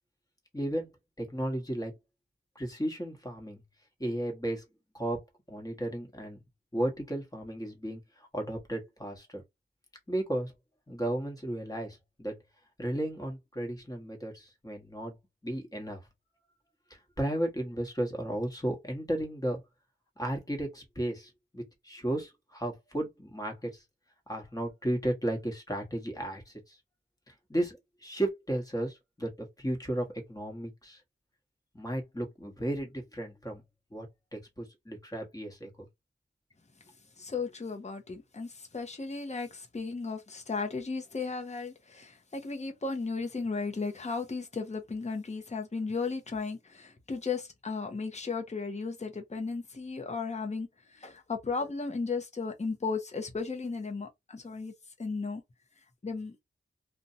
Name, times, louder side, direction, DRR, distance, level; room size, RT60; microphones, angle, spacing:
voice 1, 0.5-0.9 1.2-1.9 2.5-3.6 4.0-4.6 4.9-5.2 5.5-6.4 6.7-9.4 10.1-10.5 10.9-12.4 12.8-15.1 15.4-16.0 16.9-19.6 20.2-23.8 24.3-26.8 27.3-31.0 31.7-33.6 33.9-34.1 34.3-35.7, right 1 dB, 15° left, 1.1 m, -34 dB
voice 2, 37.2-54.7 55.0-55.4 56.0-56.4, left 4 dB, 35° left, 0.7 m, -35 dB
2.6 x 2.2 x 2.7 m
wide cardioid pair, 60°, 21 cm